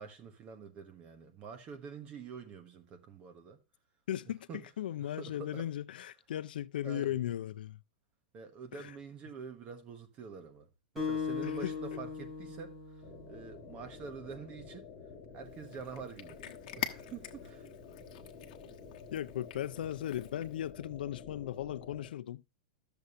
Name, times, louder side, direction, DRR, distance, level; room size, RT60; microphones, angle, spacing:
voice 1, 0.0-3.6 4.5-4.7 5.0-5.7 6.8-7.2 8.3-10.7 10.9-14.9 15.3-16.4 16.8-17.7 21.2-21.4, right 6 dB, 25° right, 1.1 m, -47 dB
voice 2, 4.1-4.4 4.8-7.8 8.7-8.9 11.4-11.7 19.1-22.4, left 12 dB, 85° left, 0.5 m, -37 dB
Acoustic guitar, 11.0-13.7, left 5 dB, ahead, 5.4 m, -38 dB
sound 1, 13.0-22.1, left 5 dB, 20° left, 2.5 m, -51 dB
Cat, 15.5-20.7, left 11 dB, 55° left, 1.1 m, -46 dB
13.0 x 6.9 x 2.4 m
supercardioid pair, 165°, 5 cm